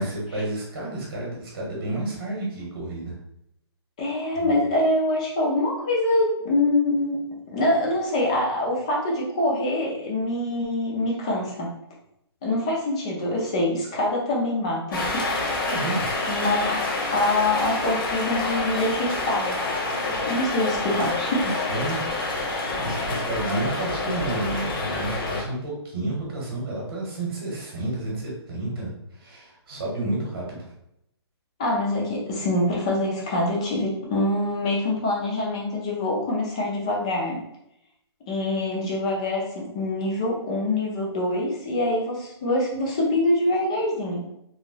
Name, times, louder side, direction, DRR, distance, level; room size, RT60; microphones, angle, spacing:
voice 1, 0.0-3.2 4.4-4.5 15.6-16.1 21.4-30.6, right 2 dB, 45° right, -4 dB, 0.9 m, -31 dB
voice 2, 4.0-7.2 7.5-11.7 12.4-15.2 16.3-16.8 17.1-19.5 20.2-21.4 31.6-37.4 38.3-44.2, left 1 dB, 15° left, -3 dB, 0.4 m, -25 dB
sound 1, 14.9-25.4, left 2 dB, 50° left, 0.8 m, -27 dB
3.0 x 2.6 x 2.7 m, 0.78 s
hypercardioid pair, 170°, 14 cm